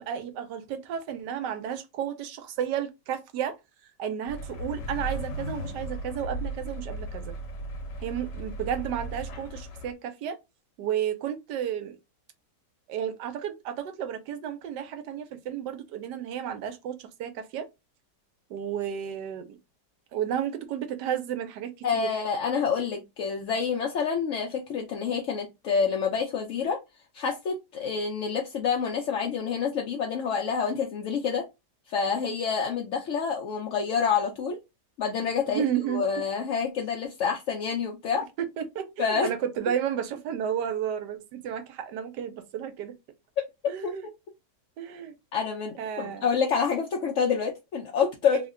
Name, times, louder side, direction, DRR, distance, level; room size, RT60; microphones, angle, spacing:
voice 1, 0.0-3.6 4.0-7.3 8.0-10.4 10.8-12.0 12.9-17.7 18.5-19.6 20.1-22.2 35.5-36.0 38.4-42.9 43.7-44.0 44.8-45.1 45.8-46.3 48.3-48.4, right 9 dB, 80° right, 1.2 m, -32 dB
sound 1, 4.3-9.9, right 1 dB, 85° left, 1.3 m, -36 dB
voice 2, 21.8-26.8 27.1-31.4 31.9-34.6 35.0-35.6 35.9-38.2 39.0-39.3 43.8-43.9 45.3-48.4, left 6 dB, 65° left, 0.7 m, -27 dB
3.1 x 2.2 x 3.6 m
omnidirectional pair, 1.8 m